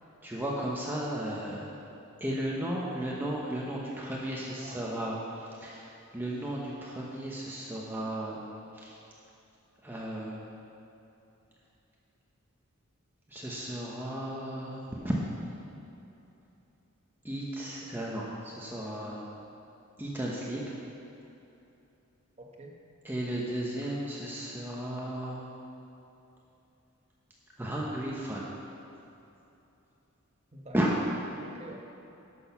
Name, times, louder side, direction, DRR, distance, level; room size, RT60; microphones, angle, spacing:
voice 1, 0.2-1.7 2.2-8.4 8.7-9.0 9.8-10.4 13.3-15.2 17.2-19.2 20.0-20.8 23.0-25.4 27.6-28.6 30.7-30.9, right 1 dB, 10° right, -5 dB, 0.9 m, -34 dB
voice 2, 4.6-5.1 22.4-22.7 30.5-30.8 31.4-31.8, right 1 dB, 30° right, 0 dB, 1.2 m, -47 dB
11.5 x 6.3 x 5.8 m, 2.9 s
head